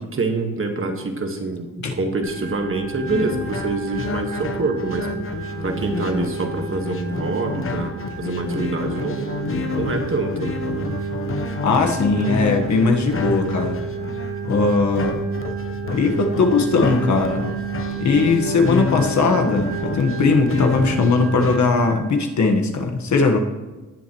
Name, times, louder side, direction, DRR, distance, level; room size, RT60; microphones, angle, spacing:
voice 1, 0.1-5.1 5.6-7.9 8.2-9.5 9.8-10.6, right 3 dB, 40° right, 4 dB, 1.6 m, -26 dB
Organ, 2.2-21.9, right 6 dB, 65° right, 3.2 m, -31 dB
sound 1, 3.1-21.6, left 5 dB, 40° left, 0.9 m, -29 dB
voice 2, 11.6-13.8 14.4-15.2 15.9-17.4 18.0-23.4, left 4 dB, 60° left, 3 dB, 1.4 m, -19 dB
18.5 x 7.3 x 3.1 m, 1.2 s
cardioid pair, 85°, 32 cm